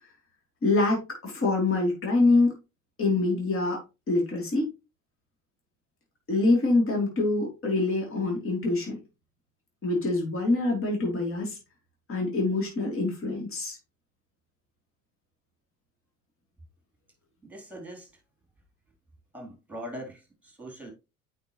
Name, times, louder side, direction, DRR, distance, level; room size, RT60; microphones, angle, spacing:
voice 1, 0.6-2.5 3.0-3.8 4.1-4.6 6.3-9.0 9.8-11.6 12.1-13.8, left 2 dB, 30° left, 3.3 m, -25 dB
voice 2, 17.4-18.1 19.3-20.9, equal, 5° right, 3.5 m, -41 dB
8.5 x 5.0 x 3.1 m
figure-of-eight pair, 70°, 42 cm